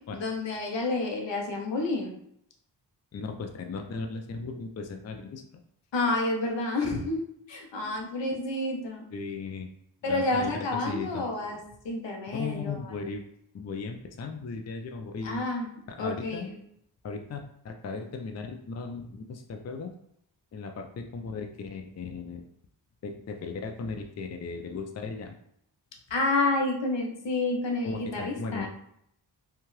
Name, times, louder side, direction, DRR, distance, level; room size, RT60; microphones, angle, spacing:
voice 1, 0.1-2.1 5.9-9.0 10.0-12.8 15.2-15.7 16.0-16.5 26.1-28.7, left 2 dB, 70° left, 1 dB, 0.8 m, -29 dB
voice 2, 3.1-5.4 7.9-8.0 9.1-9.7 10.1-10.5 10.8-11.2 12.3-13.2 13.5-15.4 16.0-16.5 17.0-19.9 20.5-22.4 23.0-25.4 27.8-28.7, left 4 dB, 35° left, 3 dB, 0.4 m, -37 dB
2.7 x 2.3 x 3.1 m, 0.72 s
cardioid pair, 45°, 45 cm